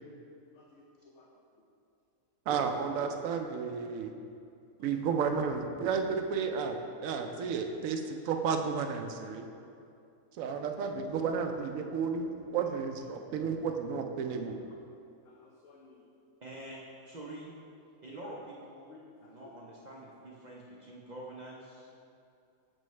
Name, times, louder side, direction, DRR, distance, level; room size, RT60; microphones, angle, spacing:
voice 1, 0.5-1.3 4.8-5.1 12.6-13.1 14.2-14.8 15.2-16.1 17.5-17.7 18.9-19.6 20.0-20.1, left 3 dB, 60° left, -3 dB, 0.8 m, -58 dB
voice 2, 2.5-4.1 4.8-9.4 10.4-14.6, right 6 dB, 75° right, 5 dB, 0.9 m, -32 dB
voice 3, 16.4-16.8 17.0-17.5 18.0-18.9 19.2-22.0, right 1 dB, 45° right, -4 dB, 0.5 m, -46 dB
7.6 x 5.4 x 3.1 m, 2.5 s
omnidirectional pair, 1.5 m